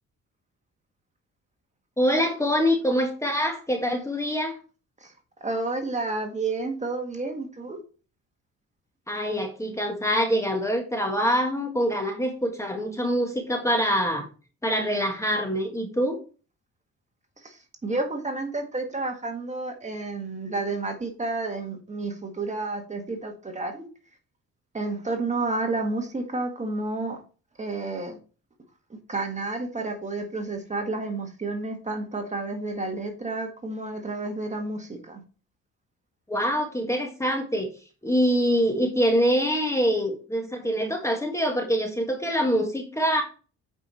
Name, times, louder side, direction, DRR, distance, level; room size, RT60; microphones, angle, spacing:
voice 1, 2.0-4.6 9.1-14.3 14.6-16.2 36.3-37.7 38.0-43.2, equal, 10° left, 1.7 m, -25 dB
voice 2, 5.4-7.8 17.4-17.6 17.8-23.8 24.7-27.2 27.6-28.2 29.1-35.2, right 3 dB, 25° right, 1.8 m, -30 dB
8.0 x 5.4 x 4.3 m
cardioid pair, 90°, 30 cm